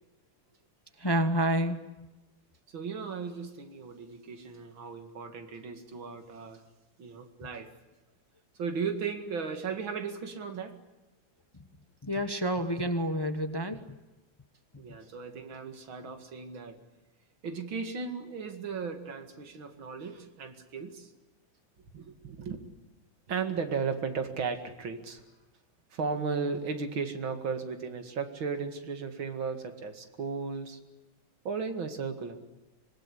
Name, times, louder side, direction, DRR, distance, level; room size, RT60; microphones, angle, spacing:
voice 1, 1.0-1.8 12.0-14.0, right 1 dB, 15° left, 8 dB, 0.9 m, -29 dB
voice 2, 2.7-6.6 7.0-7.7 8.6-10.8 14.8-16.8 17.4-21.1 21.9-22.6 23.3-25.2 25.9-30.8 31.4-32.4, right 5 dB, 85° right, 6 dB, 2.9 m, -35 dB
26.0 x 19.5 x 9.9 m, 1.1 s
omnidirectional pair, 2.1 m